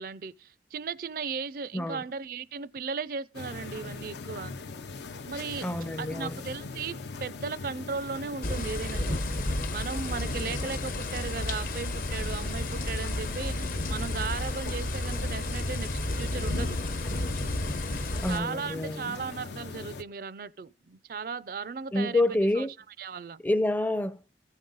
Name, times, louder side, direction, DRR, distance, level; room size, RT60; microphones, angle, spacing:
voice 1, 0.0-4.5 5.3-5.7 6.0-9.2 9.7-16.8 18.3-22.7 23.0-23.4, right 5 dB, 50° right, 0.4 m, -36 dB
sound 1, 3.3-20.0, left 3 dB, 75° left, 0.6 m, -41 dB
voice 2, 5.6-6.4 18.1-19.1 21.9-22.7 23.4-24.2, left 1 dB, 10° left, 0.5 m, -28 dB
sound 2, 8.4-18.4, left 1 dB, 50° left, 0.8 m, -32 dB
15.0 x 5.4 x 3.8 m
head